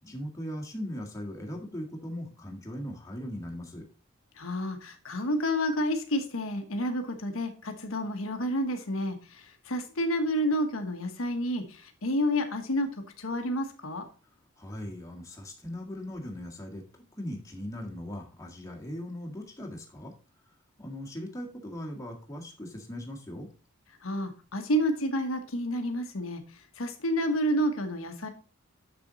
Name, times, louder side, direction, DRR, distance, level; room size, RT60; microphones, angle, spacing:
voice 1, 0.0-3.8 14.6-20.1 20.8-23.5, equal, 15° left, 0 dB, 1.9 m, -39 dB
voice 2, 4.4-14.1 24.0-28.3, equal, 90° left, 6 dB, 1.3 m, -30 dB
7.0 x 7.0 x 4.0 m, 0.36 s
head